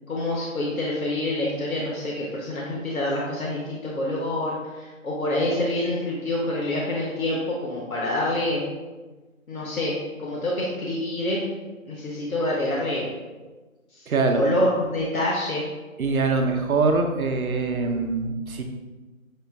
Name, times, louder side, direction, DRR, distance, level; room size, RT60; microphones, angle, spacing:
voice 1, 0.1-8.7 9.5-11.4 11.9-13.1 13.9-14.1 14.3-15.7, left 1 dB, 85° left, -4 dB, 0.9 m, -26 dB
voice 2, 14.1-14.4 16.0-18.6, right 3 dB, 85° right, 4 dB, 0.7 m, -23 dB
6.2 x 2.3 x 2.3 m, 1.2 s
figure-of-eight pair, 180°, 42 cm